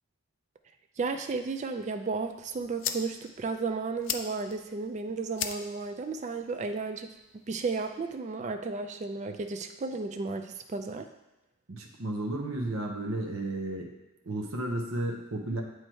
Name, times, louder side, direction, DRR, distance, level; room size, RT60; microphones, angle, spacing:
voice 1, 1.0-7.1 7.5-11.1, right 4 dB, 35° right, 6 dB, 0.3 m, -33 dB
sound 1, 2.2-8.2, left 9 dB, 60° left, 0.4 m, -41 dB
voice 2, 11.7-13.9 14.2-15.6, right 1 dB, 70° right, 2 dB, 0.8 m, -33 dB
7.6 x 3.2 x 4.4 m, 1.0 s
head